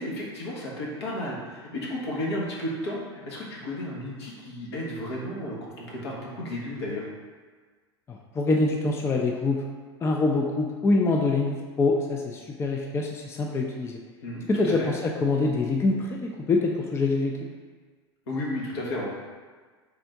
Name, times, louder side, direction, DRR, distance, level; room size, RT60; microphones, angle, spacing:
voice 1, 0.0-3.0 3.3-7.0 14.2-14.9 18.3-19.1, left 1 dB, 75° left, -4 dB, 1.2 m, -33 dB
voice 2, 8.1-9.6 10.0-14.0 14.5-17.3, left 3 dB, 20° left, 0 dB, 0.4 m, -25 dB
3.6 x 2.5 x 4.5 m, 1.5 s
hypercardioid pair, 90°, 14 cm